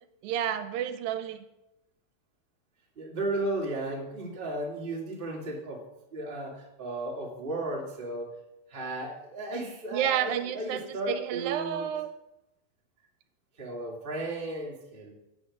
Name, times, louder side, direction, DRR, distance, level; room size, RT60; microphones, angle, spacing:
voice 1, 0.2-1.5 9.9-12.1, right 10 dB, 80° right, 9 dB, 2.4 m, -30 dB
voice 2, 2.9-5.8 6.1-8.3 8.7-11.9 13.6-15.1, right 2 dB, 20° right, -2 dB, 1.7 m, -34 dB
8.6 x 7.8 x 6.5 m, 0.91 s
omnidirectional pair, 4.0 m